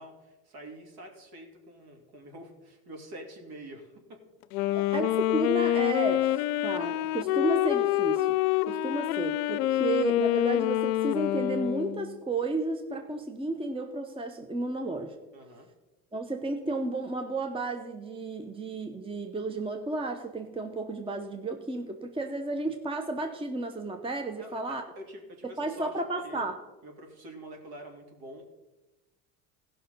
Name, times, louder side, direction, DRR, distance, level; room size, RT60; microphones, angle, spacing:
voice 1, 0.0-4.2 4.7-4.9 15.3-15.7 24.4-26.5 26.8-28.5, right 1 dB, 55° right, 2 dB, 2.8 m, -46 dB
Wind instrument woodwind instrument, 4.4-12.1, left 14 dB, 80° left, 0.5 m, -27 dB
voice 2, 4.7-8.4 8.7-15.1 16.1-24.8 25.6-26.6, right 2 dB, 10° right, 6 dB, 0.9 m, -32 dB
15.5 x 5.8 x 5.4 m, 1.1 s
hypercardioid pair, 75°, 44 cm